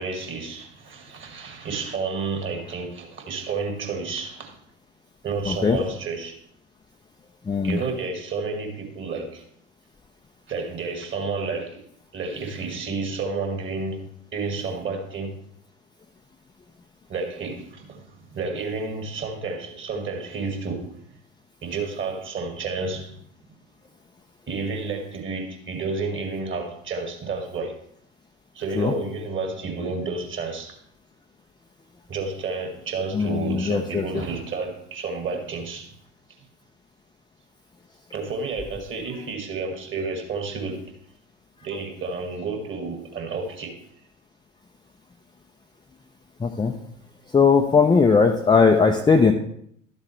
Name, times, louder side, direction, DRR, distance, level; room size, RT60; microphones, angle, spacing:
voice 1, 0.0-4.6 5.2-6.4 7.6-9.5 10.5-11.8 12.1-14.1 14.3-15.4 17.1-21.0 21.6-23.2 23.5-23.6 24.5-27.8 28.5-30.8 32.1-35.9 38.1-40.8 41.6-43.8, right 4 dB, 30° right, 2.0 m, -30 dB
voice 2, 5.5-5.8 7.5-7.8 28.8-28.9 33.1-34.0 46.4-46.7 47.3-49.3, left 5 dB, 10° left, 0.6 m, -19 dB
12.5 x 7.4 x 3.2 m
figure-of-eight pair, 75°, 40 cm